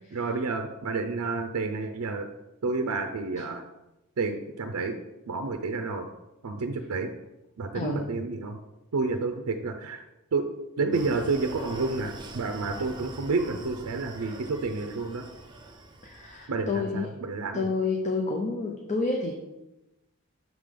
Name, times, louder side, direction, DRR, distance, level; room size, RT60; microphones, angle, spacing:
voice 1, 0.1-2.3 2.6-3.6 4.2-5.0 5.3-6.1 6.4-7.1 7.6-8.6 8.9-10.0 10.3-10.4 10.8-15.2 16.5-17.7, right 3 dB, 70° right, 6 dB, 0.5 m, -30 dB
voice 2, 7.7-8.1 16.0-17.1 17.5-19.4, left 3 dB, 35° left, 1 dB, 0.5 m, -29 dB
Screaming, 10.9-16.5, right 2 dB, 20° right, 0.6 m, -43 dB
6.1 x 3.7 x 5.0 m, 0.98 s
head